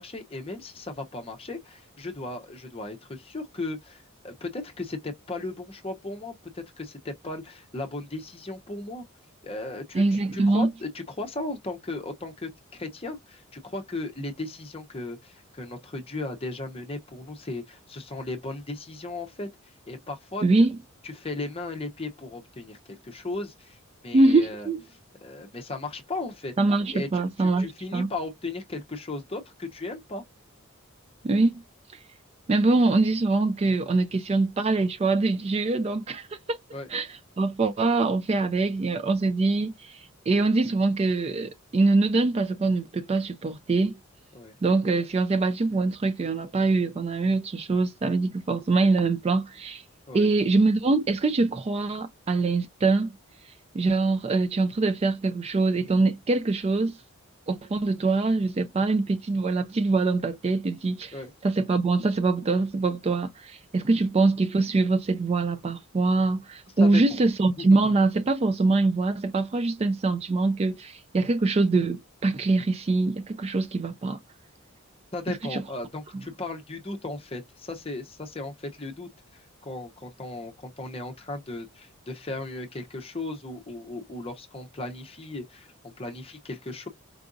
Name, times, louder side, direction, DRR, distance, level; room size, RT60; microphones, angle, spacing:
voice 1, 0.0-9.0 9.4-20.4 21.0-23.8 24.0-24.7 25.2-26.5 26.9-30.2 36.7-36.9 44.3-44.5 50.1-50.3 61.1-61.3 66.8-67.0 67.6-67.9 75.1-86.9, left 2 dB, 25° left, 0.7 m, -36 dB
voice 2, 9.9-10.7 20.4-20.8 24.1-24.8 26.6-28.1 31.2-31.6 32.5-36.6 36.9-44.0 44.6-49.8 50.1-53.1 53.7-57.0 57.5-61.1 61.4-74.2 75.5-75.6, right 3 dB, 30° right, 0.3 m, -24 dB
4.7 x 2.4 x 2.5 m
head